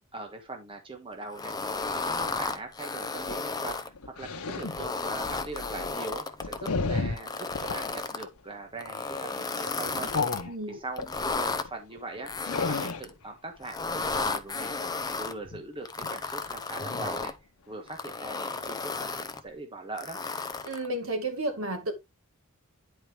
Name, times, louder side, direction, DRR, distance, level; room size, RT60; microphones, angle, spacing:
voice 1, 0.0-1.5 1.9-12.3 12.7-13.8 14.0-14.7 15.1-17.3 17.7-20.2, right 2 dB, 25° right, 1.4 m, -41 dB
sound 1, 1.3-3.9 4.5-6.7 7.2-8.3 8.8-10.4 11.0-11.7 12.3-13.1 13.6-15.3 15.9-17.4 17.9-19.4 20.0-20.9, left 3 dB, 20° left, 0.6 m, -33 dB
sound 2, 3.1-7.8 8.3-8.5 8.9-9.2 9.7-11.1 11.6-11.7 12.0-13.1 14.0-14.4 15.5-15.6 16.0-16.1 16.5-16.6 16.8-17.3 17.7-17.8, left 4 dB, 90° left, 1.0 m, -34 dB
voice 2, 10.5-10.8 20.6-21.9, right 1 dB, 65° right, 2.0 m, -32 dB
10.0 x 4.8 x 3.4 m
head